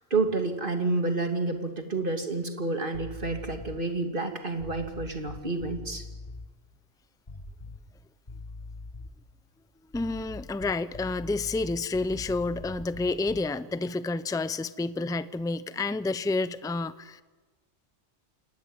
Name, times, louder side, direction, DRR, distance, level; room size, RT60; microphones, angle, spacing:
voice 1, 0.1-6.0, right 3 dB, 45° right, 5 dB, 2.8 m, -29 dB
sound 1, 2.9-3.9 4.6-6.5 7.3-8.0 8.3-9.2 9.9-13.6, left 3 dB, 30° left, 1.6 m, -43 dB
voice 2, 9.9-17.2, left 3 dB, 5° left, 14 dB, 0.6 m, -29 dB
27.0 x 19.5 x 9.2 m, 1.3 s
omnidirectional pair, 1.2 m